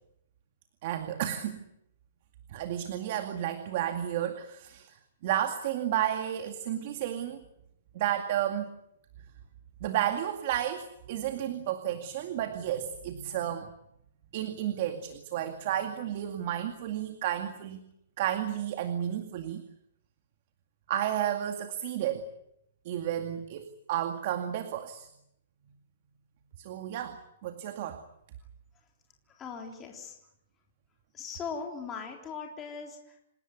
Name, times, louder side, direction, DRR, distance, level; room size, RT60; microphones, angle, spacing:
voice 1, 0.8-1.6 2.5-5.0 5.2-7.4 7.9-8.7 9.8-13.7 14.3-17.8 18.2-19.6 20.9-22.3 22.8-25.1 26.6-28.0, right 11 dB, 45° right, 7 dB, 2.2 m, -32 dB
voice 2, 29.3-30.2 31.1-33.3, left 5 dB, 15° left, 1 dB, 3.6 m, -39 dB
27.5 x 18.0 x 9.4 m, 0.77 s
hypercardioid pair, 160°, 0 cm